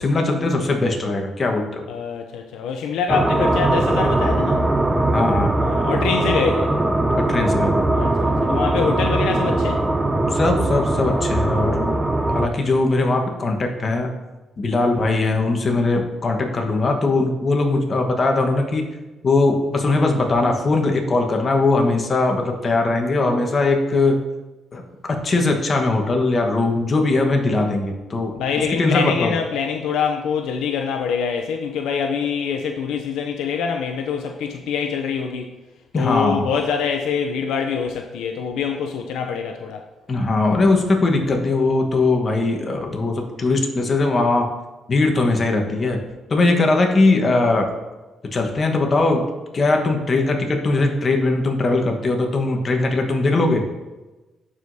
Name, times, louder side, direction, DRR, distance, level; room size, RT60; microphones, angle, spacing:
voice 1, 0.0-1.8 5.1-5.5 7.1-7.9 10.3-12.0 12.3-14.1 14.6-18.9 19.2-24.2 24.7-24.8 25.1-29.3 35.9-36.5 40.1-44.5 44.9-46.0 46.3-47.7 48.3-49.2 49.5-53.6, left 2 dB, 40° left, 2 dB, 1.2 m, -20 dB
voice 2, 1.9-4.6 5.6-6.7 7.9-9.8 28.4-35.5 35.9-39.8, left 6 dB, 85° left, 4 dB, 0.5 m, -25 dB
sound 1, 3.1-12.5, right 2 dB, 15° right, 0.5 m, -20 dB
11.5 x 4.9 x 2.7 m, 1.1 s
cardioid pair, 90°, 0 cm